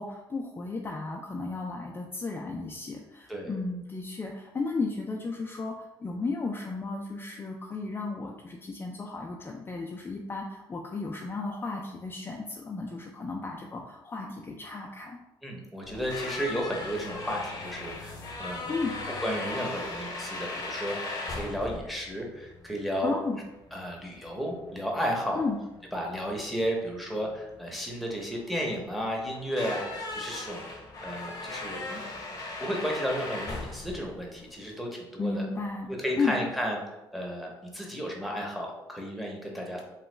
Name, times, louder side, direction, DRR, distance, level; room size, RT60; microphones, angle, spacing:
voice 1, 0.0-15.2 18.7-18.9 23.0-23.4 25.3-25.6 35.2-35.9 36.2-36.4, left 3 dB, 25° left, 0 dB, 0.4 m, -34 dB
voice 2, 15.4-18.7 19.2-23.1 23.7-25.4 25.9-32.0 32.6-35.4 35.9-36.8 37.1-39.8, equal, ahead, -1 dB, 0.8 m, -33 dB
sound 1, 15.8-34.7, left 2 dB, 40° left, 0.8 m, -38 dB
2.9 x 2.2 x 3.2 m, 1.0 s
supercardioid pair, 85°, 10 cm